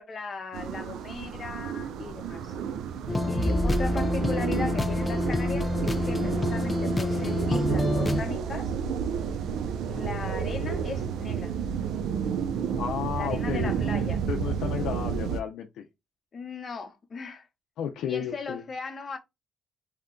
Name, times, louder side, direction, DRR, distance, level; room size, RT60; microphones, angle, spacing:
voice 1, 0.0-2.5 3.3-8.7 9.9-11.5 13.2-14.2 16.3-17.4 18.1-19.2, left 4 dB, 35° left, 0.7 m, -37 dB
sound 1, 0.5-15.4, right 7 dB, 80° right, 0.4 m, -31 dB
sound 2, 3.1-8.2, left 2 dB, 15° left, 0.3 m, -28 dB
voice 2, 3.3-3.7 12.8-13.7 14.3-15.9 17.8-18.6, left 8 dB, 80° left, 0.4 m, -33 dB
sound 3, 3.3-6.7, right 1 dB, 25° right, 1.0 m, -32 dB
2.8 x 2.2 x 3.7 m
cardioid pair, 135°, 0 cm